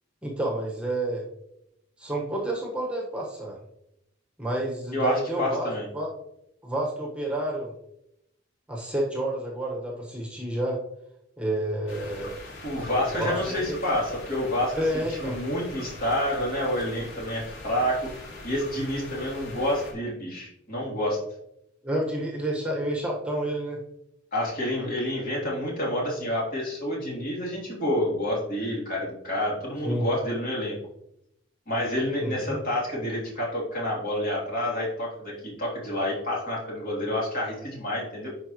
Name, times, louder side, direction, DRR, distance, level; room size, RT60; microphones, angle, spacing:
voice 1, 0.2-1.2 2.0-3.6 4.4-6.1 6.6-7.7 8.7-10.8 11.4-12.4 13.2-13.8 14.7-15.4 21.8-23.8 29.8-30.1 32.2-32.6, right 1 dB, 5° right, -2 dB, 1.4 m, -29 dB
voice 2, 4.9-5.9 12.6-18.1 18.4-21.2 24.3-30.8 31.7-38.3, left 1 dB, 45° left, -5 dB, 3.2 m, -28 dB
sound 1, 11.9-19.9, left 2 dB, 85° left, 2.4 m, -42 dB
11.0 x 4.8 x 3.1 m, 0.80 s
head